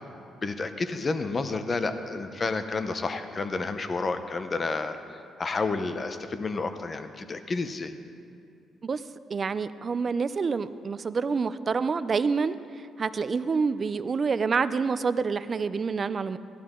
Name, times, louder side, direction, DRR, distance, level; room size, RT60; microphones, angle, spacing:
voice 1, 0.4-5.0 5.4-7.9, left 3 dB, 35° left, 9 dB, 0.8 m, -30 dB
voice 2, 9.3-12.5 13.0-16.4, right 5 dB, 40° right, 14 dB, 0.4 m, -27 dB
16.5 x 12.0 x 3.7 m, 2.5 s
cardioid pair, 90°, 0 cm